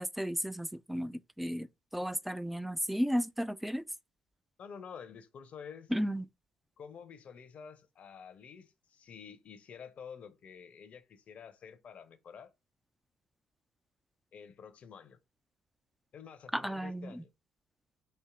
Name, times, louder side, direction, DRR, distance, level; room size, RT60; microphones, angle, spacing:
voice 1, 0.0-1.7 1.9-3.8 5.9-6.2 16.5-17.2, equal, 5° right, 0.4 m, -34 dB
voice 2, 4.6-5.9 6.8-12.5 14.3-15.2 16.1-17.3, left 7 dB, 50° left, 0.7 m, -49 dB
4.4 x 2.8 x 3.6 m
hypercardioid pair, 50°, 3 cm